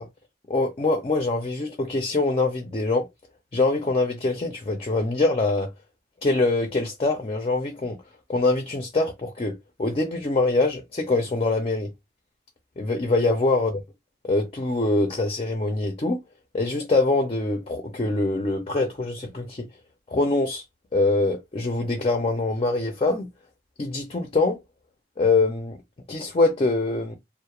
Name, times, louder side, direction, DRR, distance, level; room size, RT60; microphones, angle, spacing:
voice 1, 0.5-3.1 3.5-5.7 6.2-8.0 8.3-11.9 12.8-13.8 14.2-16.2 16.5-19.7 20.1-20.6 20.9-23.3 23.8-24.6 25.2-25.8 26.1-27.2, left 2 dB, 35° left, 0.4 m, -24 dB
2.3 x 2.0 x 2.9 m
head